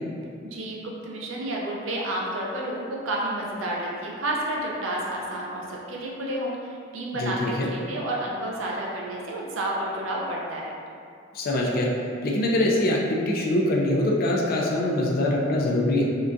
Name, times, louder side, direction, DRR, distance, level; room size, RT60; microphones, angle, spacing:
voice 1, 0.4-10.7, right 1 dB, 80° right, -3 dB, 0.5 m, -30 dB
voice 2, 7.2-7.7 11.3-11.9 12.2-16.1, left 1 dB, 50° left, -2 dB, 0.4 m, -23 dB
3.7 x 2.6 x 2.2 m, 2.4 s
head